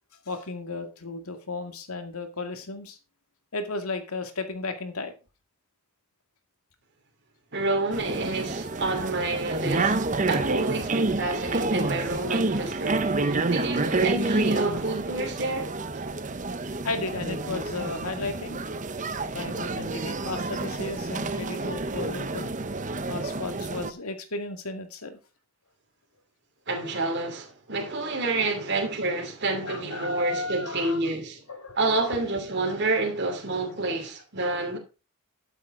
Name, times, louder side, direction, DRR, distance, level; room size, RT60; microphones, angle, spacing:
voice 1, 0.3-3.0 3.5-5.1 16.8-18.6 19.3-22.5 23.1-25.2 28.0-28.1 28.4-28.5 29.6-31.0 31.5-32.2, left 3 dB, 80° left, 2.1 m, -34 dB
voice 2, 7.5-15.7 26.7-31.4 31.7-34.8, right 2 dB, 50° right, 2.8 m, -28 dB
sound 1, 7.9-23.9, right 3 dB, 35° right, 0.8 m, -29 dB
12.5 x 8.4 x 3.8 m
head